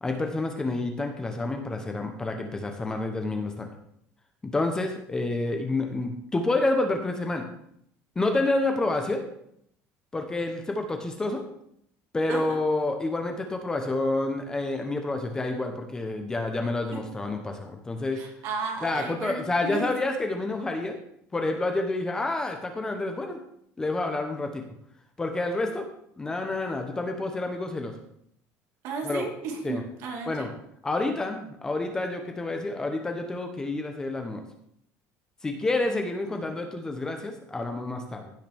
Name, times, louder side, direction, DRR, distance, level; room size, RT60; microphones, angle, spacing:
voice 1, 0.0-3.7 4.5-7.4 8.2-9.3 10.1-11.5 12.1-18.2 18.8-21.0 21.3-23.4 23.8-24.6 25.2-25.9 26.2-28.0 29.0-29.3 29.6-29.8 30.3-30.5 30.8-34.4 35.4-38.3, left 2 dB, 10° left, 5 dB, 0.9 m, -28 dB
voice 2, 18.1-19.9 28.8-30.5, right 3 dB, 60° right, 2 dB, 2.2 m, -34 dB
16.0 x 5.8 x 3.5 m, 0.71 s
cardioid pair, 165°, 6 cm